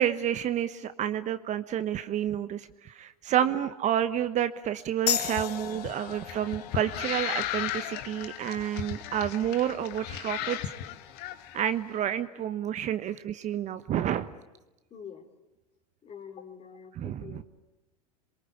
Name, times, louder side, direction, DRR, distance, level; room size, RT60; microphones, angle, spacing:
voice 1, 0.0-10.6 11.5-14.3 17.0-17.4, right 10 dB, 35° right, 11 dB, 1.2 m, -29 dB
sound 1, 5.1-12.2, left 10 dB, 75° left, 1.6 m, -38 dB
sound 2, 5.3-11.6, left 11 dB, 50° left, 1.7 m, -36 dB
voice 2, 14.9-15.3 16.0-17.4, left 7 dB, 30° left, 7 dB, 4.1 m, -45 dB
27.5 x 23.0 x 8.4 m, 1.0 s
hypercardioid pair, 95°, 21 cm